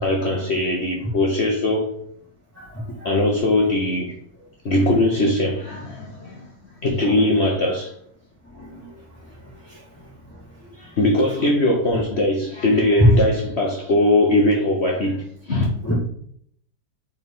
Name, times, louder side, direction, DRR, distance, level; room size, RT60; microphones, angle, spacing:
voice 1, 0.0-2.0 3.0-4.1 4.6-6.5 6.8-7.9 10.8-15.6, left 1 dB, 45° left, 1.0 m, -20 dB
voice 2, 8.5-8.9 15.6-15.9, left 1 dB, 10° left, 1.5 m, -31 dB
4.6 x 4.3 x 5.4 m
omnidirectional pair, 1.8 m